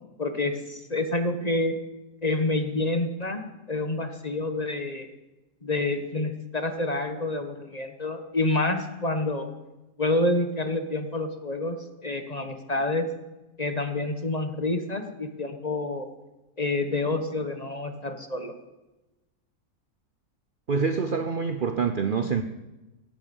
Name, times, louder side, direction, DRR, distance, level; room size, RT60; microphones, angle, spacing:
voice 1, 0.2-1.7 2.2-3.4 3.7-5.1 5.6-9.5 10.0-11.8 12.0-13.0 13.6-16.1 16.6-18.5, left 2 dB, 25° left, 1.3 m, -28 dB
voice 2, 20.7-22.4, right 5 dB, 45° right, 0.7 m, -26 dB
16.5 x 14.0 x 5.4 m
omnidirectional pair, 1.7 m